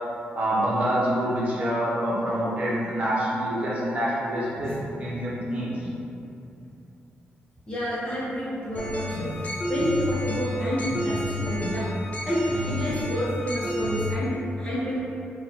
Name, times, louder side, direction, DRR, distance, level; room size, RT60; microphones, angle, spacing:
voice 1, 0.3-4.7 5.0-5.9 12.5-12.8, right 1 dB, 35° right, -7 dB, 0.8 m, -26 dB
voice 2, 7.7-9.3 9.7-11.8 12.3-12.4 12.7-15.0, equal, 20° left, -10 dB, 0.9 m, -29 dB
sound 1, 8.7-14.1, left 1 dB, 40° left, 0.5 m, -30 dB
2.9 x 2.3 x 4.0 m, 2.7 s
wide cardioid pair, 140°, 4 cm